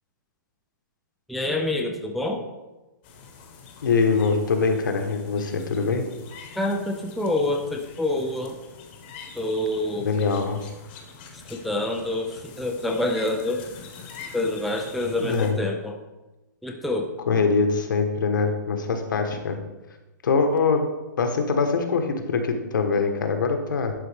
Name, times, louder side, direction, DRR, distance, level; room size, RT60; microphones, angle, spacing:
voice 1, 1.3-2.4 6.6-8.5 9.4-10.1 11.5-13.6 14.3-16.0 16.6-17.1, left 1 dB, ahead, 1 dB, 0.3 m, -27 dB
sound 1, 3.0-15.5, left 5 dB, 30° left, 1.0 m, -45 dB
voice 2, 3.8-6.0 10.0-10.6 15.2-15.6 17.3-19.6 20.2-20.8 21.2-23.9, left 4 dB, 75° left, 5 dB, 1.2 m, -23 dB
11.0 x 4.1 x 3.5 m, 1.1 s
hypercardioid pair, 160°, 11 cm